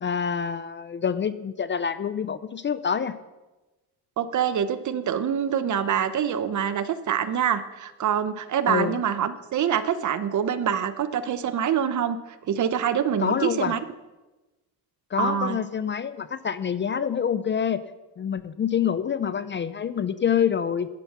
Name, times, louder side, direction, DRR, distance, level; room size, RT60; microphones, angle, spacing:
voice 1, 0.0-3.2 8.7-9.0 13.2-13.8 15.1-17.8 18.2-20.9, left 7 dB, 30° left, 14 dB, 0.4 m, -26 dB
voice 2, 4.2-12.2 12.5-13.8 15.2-15.6, right 8 dB, 50° right, 13 dB, 0.9 m, -25 dB
10.5 x 9.9 x 6.0 m, 1.1 s
cardioid pair, 125°, 39 cm